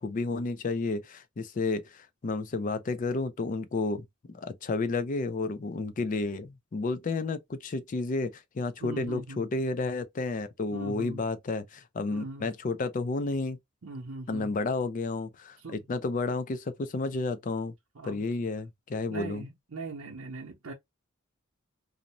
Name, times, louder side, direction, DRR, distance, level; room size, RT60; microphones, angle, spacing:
voice 1, 0.0-13.6 14.3-17.7 18.0-19.4, left 3 dB, 40° left, 0.4 m, -31 dB
voice 2, 8.8-9.4 10.7-11.3 12.1-12.5 13.8-14.5 15.6-15.8 17.9-18.5 19.1-20.7, right 3 dB, 85° right, 0.7 m, -41 dB
2.6 x 2.0 x 2.8 m
head